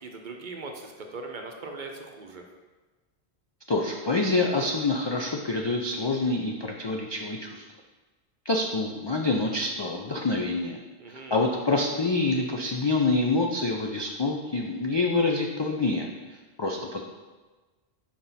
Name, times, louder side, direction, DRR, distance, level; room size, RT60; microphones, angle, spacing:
voice 1, 0.0-2.4 11.0-11.4, right 3 dB, 50° right, 3 dB, 0.8 m, -40 dB
voice 2, 3.7-7.6 8.5-10.8 11.1-16.1 16.6-17.0, left 3 dB, 45° left, 0 dB, 0.3 m, -26 dB
6.0 x 4.9 x 4.0 m, 1.3 s
omnidirectional pair, 1.1 m